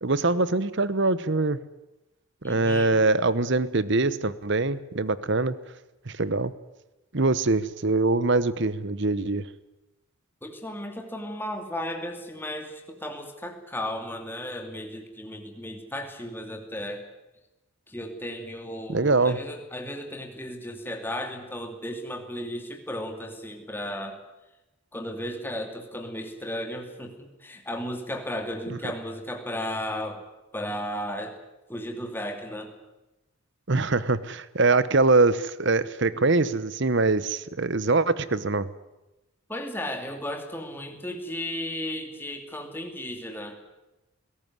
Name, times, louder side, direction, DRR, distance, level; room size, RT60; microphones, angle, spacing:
voice 1, 0.0-1.6 2.4-5.5 6.1-6.5 7.1-9.5 18.9-19.4 28.7-28.8 33.7-38.7, right 3 dB, 55° right, 16 dB, 1.0 m, -23 dB
voice 2, 2.4-3.0 10.4-17.0 17.9-24.2 24.9-30.2 30.5-31.3 31.7-32.7 39.5-43.6, left 1 dB, 10° left, 4 dB, 2.7 m, -35 dB
21.5 x 18.0 x 9.7 m, 0.99 s
head